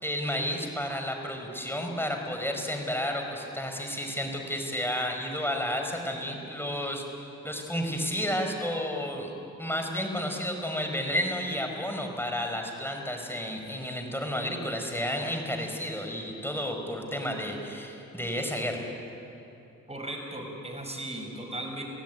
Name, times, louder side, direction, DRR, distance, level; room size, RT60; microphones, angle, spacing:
voice 1, 0.0-7.0 7.4-9.3 9.6-18.9, equal, 5° left, 3 dB, 5.2 m, -31 dB
voice 2, 19.9-21.8, right 1 dB, 20° right, 2 dB, 6.3 m, -37 dB
28.0 x 16.5 x 9.5 m, 2.9 s
cardioid pair, 65°, 32 cm